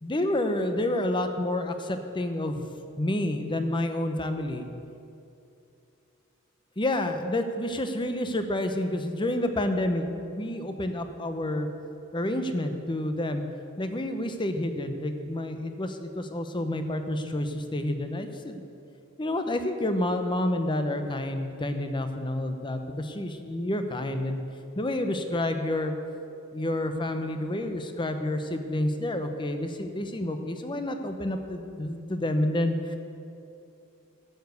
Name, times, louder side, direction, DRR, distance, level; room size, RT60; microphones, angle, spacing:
voice 1, 0.0-2.6 3.0-4.7 6.8-10.0 10.3-11.7 12.1-13.4 13.8-18.6 19.2-24.4 24.8-25.9 26.5-33.0, left 1 dB, 20° left, 7 dB, 0.8 m, -29 dB
12.0 x 7.0 x 8.0 m, 2.6 s
head